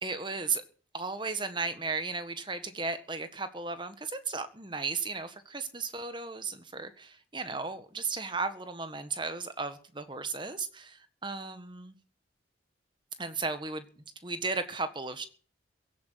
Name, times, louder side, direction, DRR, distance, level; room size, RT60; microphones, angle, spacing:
voice 1, 0.0-0.6 0.9-11.9 13.2-15.3, right 4 dB, 25° right, 10 dB, 1.5 m, -35 dB
16.0 x 9.8 x 6.4 m, 0.42 s
head